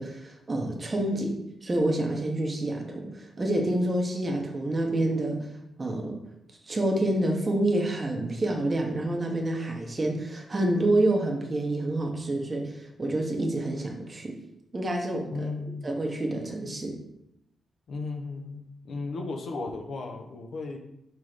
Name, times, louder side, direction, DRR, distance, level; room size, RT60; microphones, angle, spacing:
voice 1, 0.0-5.4 5.8-6.2 6.7-14.3 14.7-15.3 15.8-17.0, right 1 dB, 20° right, 1 dB, 1.0 m, -28 dB
voice 2, 15.3-15.9 17.9-20.8, left 3 dB, 50° left, 3 dB, 0.9 m, -35 dB
6.0 x 3.6 x 5.0 m, 0.81 s
wide cardioid pair, 180°, 0 cm